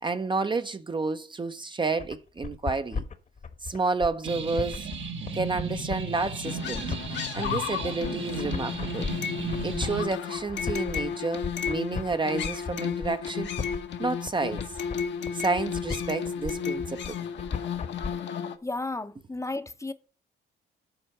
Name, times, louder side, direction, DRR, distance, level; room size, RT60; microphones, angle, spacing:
voice 1, 0.0-3.0 3.6-4.9 5.3-6.9 7.3-9.1 9.6-13.5 14.0-14.7 15.3-17.2, right 3 dB, 25° right, 0.6 m, -30 dB
sound 1, 2.0-18.1, left 5 dB, 40° left, 1.1 m, -36 dB
sound 2, 4.2-10.0, right 4 dB, 70° right, 1.6 m, -35 dB
sound 3, 6.4-18.6, left 7 dB, 65° left, 1.0 m, -33 dB
voice 2, 18.6-19.9, left 2 dB, 15° left, 0.7 m, -33 dB
7.9 x 4.5 x 6.6 m
cardioid pair, 90°, 20 cm